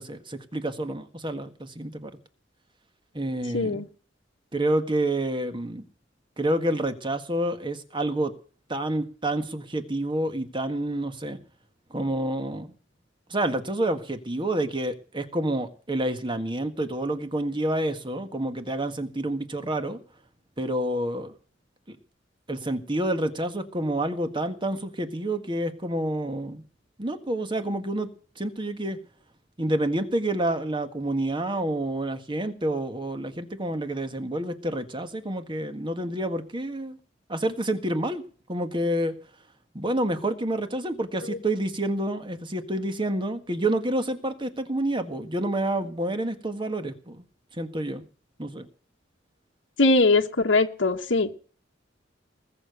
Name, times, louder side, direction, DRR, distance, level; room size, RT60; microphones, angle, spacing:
voice 1, 0.0-2.1 3.1-3.8 4.5-5.8 6.4-8.3 8.7-11.4 11.9-12.7 13.3-20.0 20.6-21.3 21.9-22.0 22.5-26.6 27.0-28.1 28.4-29.0 29.6-37.0 37.3-38.2 38.5-39.1 39.7-47.2 47.5-48.0 48.4-48.7, right 1 dB, 25° right, 8 dB, 1.7 m, -28 dB
voice 2, 3.5-3.8 41.3-41.4 49.8-51.3, left 3 dB, 85° left, 1 dB, 1.4 m, -21 dB
20.0 x 7.0 x 7.9 m, 0.40 s
head